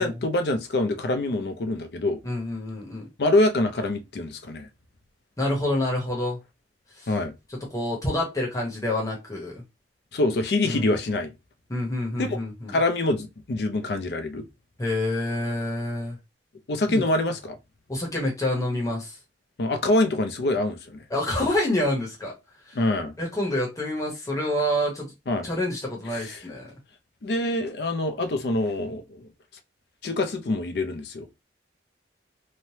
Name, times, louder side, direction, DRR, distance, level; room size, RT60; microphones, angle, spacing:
voice 1, 0.0-2.2 3.2-4.7 7.1-7.3 10.1-11.3 12.2-12.4 12.7-14.5 16.7-17.6 19.6-21.0 22.7-23.1 25.3-25.5 26.1-26.4 27.2-29.3 30.0-31.3, left 2 dB, 60° left, 0.5 m, -25 dB
voice 2, 2.2-3.1 5.4-6.4 7.0-7.1 7.7-9.6 10.6-10.9 11.7-12.7 14.8-16.2 16.9-17.0 17.9-19.2 21.1-22.3 22.7-22.8 23.2-25.1 25.4-26.7, left 1 dB, 20° left, 0.9 m, -27 dB
3.1 x 2.1 x 2.7 m
head